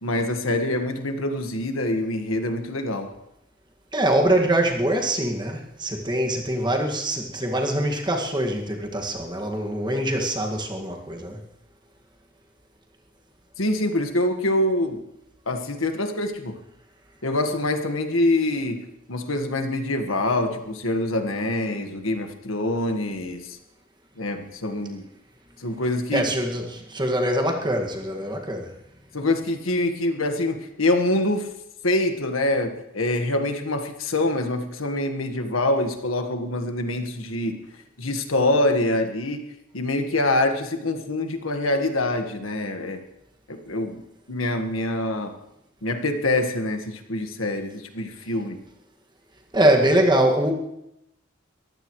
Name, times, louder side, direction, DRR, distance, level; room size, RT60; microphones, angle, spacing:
voice 1, 0.0-3.1 13.6-15.0 15.5-16.6 17.2-23.6 24.2-25.0 25.6-26.2 29.1-31.5 31.8-37.6 38.0-39.4 39.7-43.0 43.5-44.0 44.3-45.3 45.8-48.6, left 1 dB, 85° left, 6 dB, 1.6 m, -25 dB
voice 2, 3.9-11.4 26.1-28.7 49.5-50.5, right 1 dB, 25° right, 1 dB, 2.0 m, -23 dB
22.5 x 15.0 x 3.2 m, 0.83 s
head